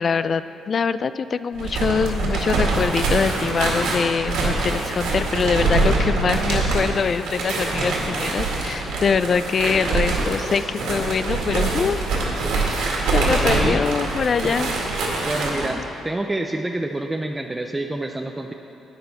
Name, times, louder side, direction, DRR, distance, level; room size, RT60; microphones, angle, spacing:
voice 1, 0.0-12.0 13.1-14.7 15.7-15.8, left 6 dB, 45° left, 14 dB, 0.3 m, -23 dB
sound 1, 1.5-15.7, right 3 dB, 90° right, 2.0 m, -24 dB
voice 2, 13.3-13.8 14.4-14.6 15.3-18.5, right 2 dB, 15° right, 3 dB, 0.5 m, -27 dB
11.0 x 8.9 x 4.0 m, 2.7 s
cardioid pair, 90°, 0 cm